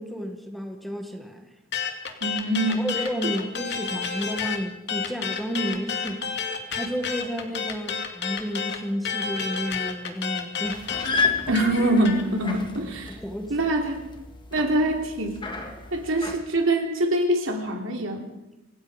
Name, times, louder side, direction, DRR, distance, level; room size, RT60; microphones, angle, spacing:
voice 1, 0.0-1.4 2.7-6.2 6.7-10.8 13.1-13.7, equal, ahead, 2.0 m, -32 dB
sound 1, 1.7-4.6 4.9-12.2, left 6 dB, 60° left, 2.8 m, -30 dB
voice 2, 2.2-2.9 11.5-13.1 13.5-14.0 14.5-15.4 15.9-18.3, right 1 dB, 70° right, 3.7 m, -24 dB
sound 2, 10.6-16.4, left 4 dB, 25° left, 2.5 m, -32 dB
26.5 x 18.5 x 5.3 m
head